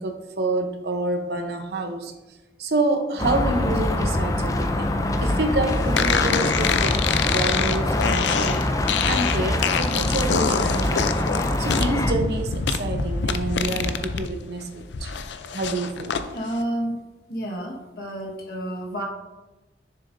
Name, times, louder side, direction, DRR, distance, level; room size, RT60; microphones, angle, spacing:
voice 1, 0.0-2.1 2.6-8.7 9.0-11.1 11.6-15.2 15.5-16.1, right 2 dB, 65° right, 5 dB, 0.8 m, -28 dB
sound 1, 3.2-12.1, left 1 dB, 20° left, 0.4 m, -24 dB
sound 2, 6.0-14.3 14.6-16.2, left 6 dB, 85° left, 0.5 m, -25 dB
voice 2, 16.3-17.0 17.3-19.0, right 1 dB, 55° left, -2 dB, 1.4 m, -30 dB
7.0 x 6.8 x 2.6 m, 1.1 s
head